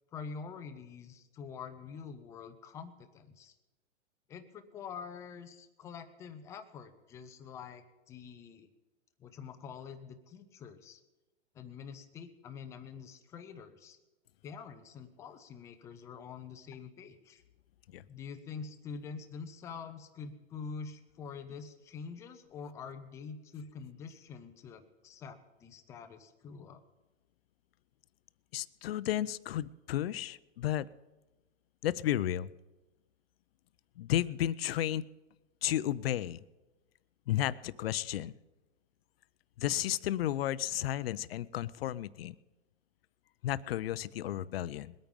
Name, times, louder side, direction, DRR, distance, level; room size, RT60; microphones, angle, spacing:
voice 1, 0.1-3.6 4.3-8.7 9.2-11.0 11.5-14.0 14.4-17.4 18.1-26.8, left 6 dB, 10° left, 8 dB, 0.4 m, -46 dB
voice 2, 28.5-30.9 31.8-32.5 34.0-35.1 35.6-36.4 37.3-38.3 39.6-42.3 43.4-44.9, left 12 dB, 55° left, 17 dB, 0.6 m, -33 dB
21.0 x 9.1 x 5.3 m, 1.1 s
hypercardioid pair, 145°, 37 cm